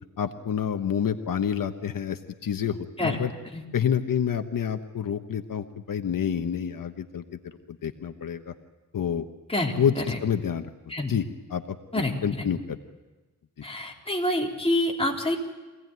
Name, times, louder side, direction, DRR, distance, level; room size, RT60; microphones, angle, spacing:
voice 1, 0.2-3.3 3.7-7.2 7.7-8.5 8.9-9.3 9.8-10.7 11.1-11.2 11.5-12.8, left 8 dB, 85° left, 7 dB, 1.1 m, -28 dB
voice 2, 9.5-10.2 10.9-11.2 11.9-12.5 13.6-15.4, left 1 dB, 20° left, -1 dB, 3.8 m, -27 dB
24.5 x 17.5 x 9.4 m, 1.2 s
wide cardioid pair, 105°, 32 cm